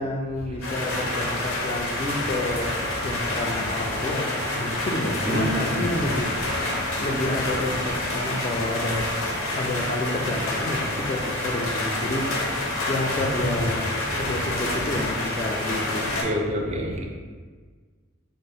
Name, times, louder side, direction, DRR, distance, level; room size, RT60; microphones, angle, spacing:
voice 1, 0.0-4.3 4.6-6.3 7.0-12.3 12.9-13.8 14.2-16.3, left 1 dB, 30° left, 1 dB, 0.3 m, -29 dB
sound 1, 0.6-16.2, left 1 dB, 85° left, 0.7 m, -28 dB
voice 2, 5.2-5.7 6.0-6.1 13.4-13.7 16.2-17.1, equal, 35° right, 1 dB, 0.4 m, -27 dB
3.7 x 2.0 x 4.0 m, 1.5 s
head